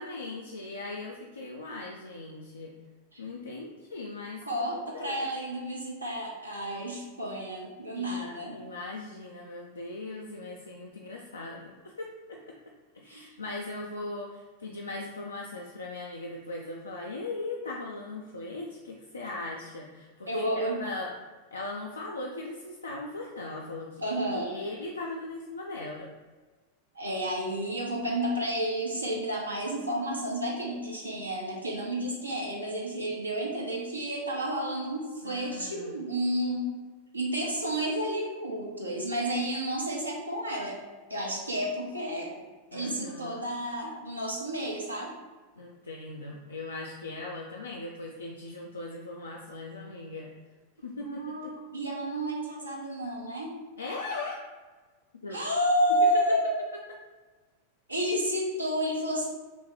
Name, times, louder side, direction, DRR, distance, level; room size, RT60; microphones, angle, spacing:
voice 1, 0.0-2.7 3.2-5.2 7.9-12.5 12.9-21.1 21.5-24.0 24.3-26.1 35.2-36.0 42.7-43.5 45.6-50.3 50.8-51.5 53.8-54.4 55.2-55.4 56.0-56.2, left 2 dB, 75° left, -1 dB, 0.3 m, -39 dB
voice 2, 4.4-8.6 13.1-13.3 20.3-20.8 24.0-24.5 26.9-36.7 37.1-40.8 41.1-42.4 42.7-45.1 51.0-53.5 55.3-56.6 57.9-59.3, right 1 dB, 85° right, -2 dB, 0.6 m, -31 dB
3.0 x 2.9 x 3.5 m, 1.3 s
figure-of-eight pair, 90°, 0 cm